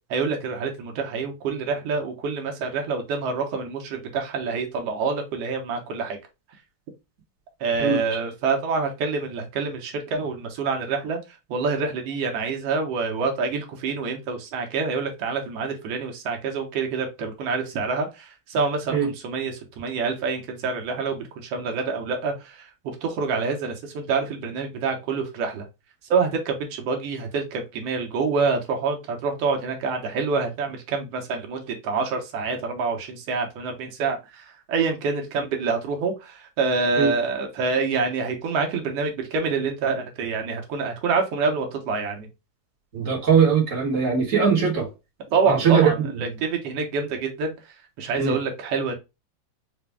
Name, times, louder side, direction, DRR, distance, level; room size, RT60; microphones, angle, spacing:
voice 1, 0.1-6.2 7.6-11.2 11.5-22.7 23.0-25.6 26.1-42.3 45.3-47.6 48.0-48.9, right 4 dB, 70° right, 1.8 m, -26 dB
voice 2, 42.9-44.9 45.5-46.1 48.2-48.4, right 6 dB, 45° right, 1.0 m, -20 dB
5.0 x 2.2 x 3.3 m
omnidirectional pair, 3.3 m